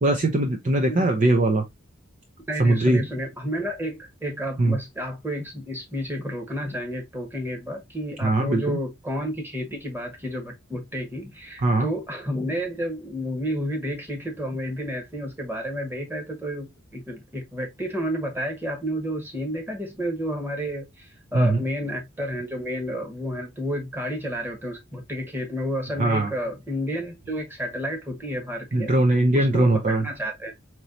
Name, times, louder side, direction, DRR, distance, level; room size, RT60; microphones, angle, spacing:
voice 1, 0.0-1.6 2.6-3.0 4.6-4.8 8.2-8.8 11.6-11.9 21.3-21.6 26.0-26.3 28.7-30.0, right 2 dB, 40° right, 0.6 m, -20 dB
voice 2, 2.5-28.9 29.3-30.5, equal, 10° right, 1.3 m, -31 dB
4.5 x 3.0 x 2.6 m
head